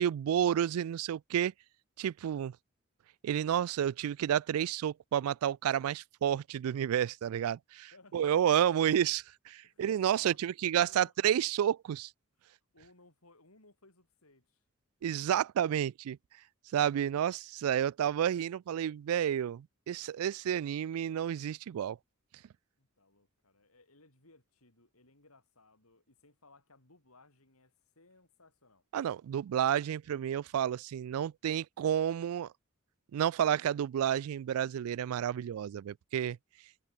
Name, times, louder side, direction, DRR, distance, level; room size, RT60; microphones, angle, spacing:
voice 1, 0.0-1.5 2.0-2.5 3.2-12.1 15.0-16.2 16.7-22.0 28.9-32.5 33.1-36.4, right 9 dB, 80° right, 0.3 m, -30 dB
voice 2, 7.9-9.2 9.6-10.4 10.7-11.1 12.4-14.6 22.8-28.8 36.2-36.4, left 2 dB, 90° left, 7.8 m, -63 dB
head